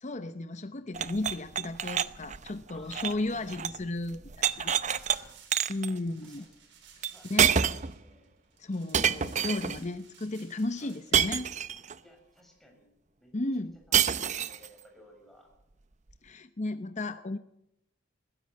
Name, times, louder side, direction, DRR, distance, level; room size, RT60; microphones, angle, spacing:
voice 1, 0.0-4.7 5.7-6.5 7.3-7.5 8.6-11.5 13.3-13.8 16.2-17.4, left 2 dB, 40° left, 10 dB, 0.7 m, -34 dB
sound 1, 0.9-3.8 4.1-5.2 5.5-5.9 7.0-7.1 7.4-8.0 8.9-9.8 11.1-11.9 13.9-14.7, right 8 dB, 40° right, 0.7 m, -27 dB
voice 2, 2.7-3.9 4.6-5.4 6.2-6.5 7.1-8.3 10.8-11.0 12.0-12.9 13.2-13.3 13.9-15.5, equal, ahead, 1 dB, 6.9 m, -57 dB
sound 2, 5.0-11.6, right 7 dB, 65° right, 4.6 m, -55 dB
21.0 x 16.0 x 7.7 m, 0.80 s
head